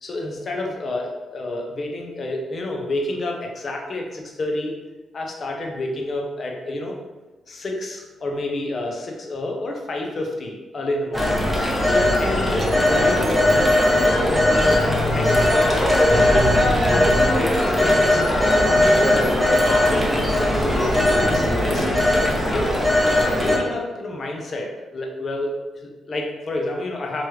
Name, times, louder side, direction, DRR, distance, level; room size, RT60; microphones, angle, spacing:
voice 1, 0.0-4.7 5.1-7.0 7.5-11.4 11.8-13.4 13.8-14.9 15.1-20.2 20.7-22.7 23.3-25.5 25.7-27.3, left 2 dB, 50° left, 1 dB, 0.6 m, -29 dB
Telephone, 11.1-23.6, left 1 dB, 5° right, 0.7 m, -18 dB
3.0 x 2.3 x 3.0 m, 1.2 s
supercardioid pair, 55°, 0 cm